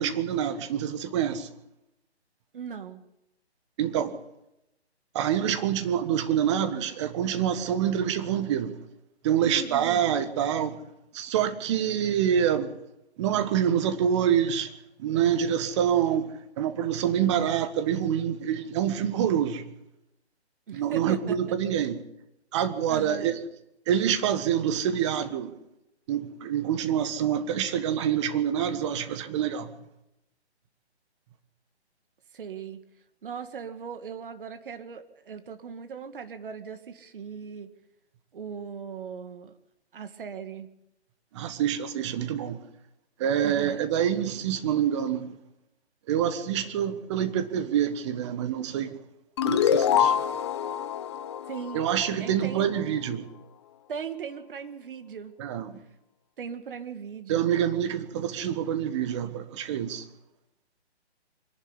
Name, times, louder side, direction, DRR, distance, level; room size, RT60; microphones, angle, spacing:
voice 1, 0.0-1.5 3.8-4.2 5.1-8.8 9.2-10.8 11.1-12.7 13.2-14.7 15.0-19.6 20.7-22.0 22.5-23.4 23.9-25.5 26.1-29.7 41.3-42.6 43.2-45.3 46.1-49.0 49.4-50.2 51.7-53.3 55.4-55.8 57.3-60.0, right 9 dB, 25° right, 1.5 m, -26 dB
voice 2, 2.5-3.0 9.4-10.1 20.7-21.4 22.9-23.3 32.3-32.8 33.2-37.7 38.3-39.5 39.9-40.7 43.4-43.8 51.5-51.8 52.2-52.7 53.9-55.4 56.4-57.5, right 6 dB, 50° right, 2.2 m, -38 dB
sound 1, 49.4-52.6, left 9 dB, 25° left, 0.7 m, -26 dB
24.5 x 11.5 x 9.8 m
hypercardioid pair, 150°, 34 cm